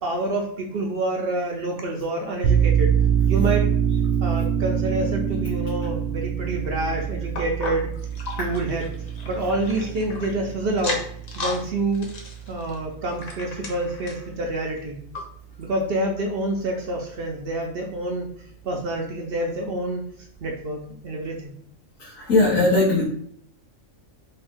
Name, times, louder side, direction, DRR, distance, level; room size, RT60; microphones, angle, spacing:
voice 1, 0.0-2.9 3.3-3.7 4.2-7.9 8.4-8.9 9.3-11.0 11.4-12.1 12.5-15.0 15.6-18.3 18.6-20.0 20.4-21.5, right 2 dB, 60° right, 1 dB, 0.6 m, -27 dB
sound 1, 2.4-13.7, right 8 dB, 85° right, 1.1 m, -25 dB
sound 2, 7.3-10.3 10.7-11.6 11.9-14.3 14.8-14.9 15.1-15.2 15.9-16.0, left 3 dB, 50° left, 0.5 m, -35 dB
voice 2, 22.0-23.0, left 2 dB, 90° left, -6 dB, 1.3 m, -19 dB
3.4 x 2.6 x 3.4 m, 0.65 s
omnidirectional pair, 1.4 m